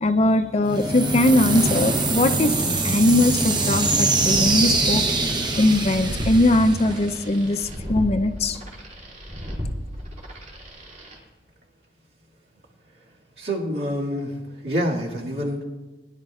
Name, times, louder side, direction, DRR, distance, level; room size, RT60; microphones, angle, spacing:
voice 1, 0.0-2.6 2.8-5.0 5.6-8.6, left 1 dB, 35° left, 8 dB, 0.5 m, -20 dB
sound 1, 0.6-7.5, right 3 dB, 25° right, 0.8 m, -23 dB
sound 2, 5.8-11.2, equal, 40° right, 2.7 m, -34 dB
voice 2, 13.4-15.6, equal, 60° right, -3 dB, 2.0 m, -27 dB
19.5 x 10.5 x 2.4 m, 1.2 s
head